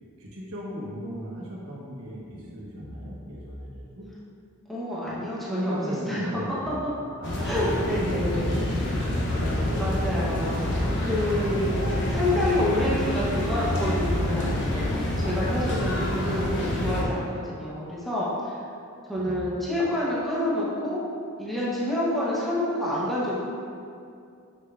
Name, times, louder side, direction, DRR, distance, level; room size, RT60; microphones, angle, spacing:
voice 1, 0.2-4.1 5.5-6.8 7.2-9.0 9.3-9.8 10.4-11.9 16.3-16.9 19.1-19.5, equal, 75° right, -4 dB, 1.3 m, -37 dB
voice 2, 4.7-5.7 6.1-6.9 7.4-8.9 9.7-10.7 11.1-18.6 19.1-21.0 21.4-23.4, left 1 dB, ahead, -9 dB, 1.1 m, -28 dB
sound 1, 7.2-17.0, left 1 dB, 55° left, 0.9 m, -27 dB
6.6 x 6.1 x 2.5 m, 2.5 s
head